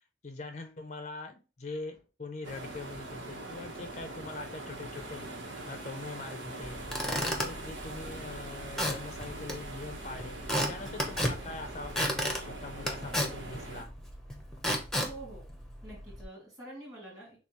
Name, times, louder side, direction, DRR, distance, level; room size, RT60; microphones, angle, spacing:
voice 1, 0.2-5.2 5.5-6.8 7.1-10.4 10.7-13.9, left 3 dB, 40° left, 6 dB, 0.5 m, -43 dB
sound 1, 2.4-13.8, right 2 dB, 85° right, 1.2 m, -43 dB
Squeak / Wood, 6.6-16.2, equal, ahead, 0.8 m, -35 dB
voice 2, 15.0-15.4 15.8-17.4, right 1 dB, 20° right, -4 dB, 2.5 m, -46 dB
6.7 x 2.4 x 3.0 m, 0.32 s
head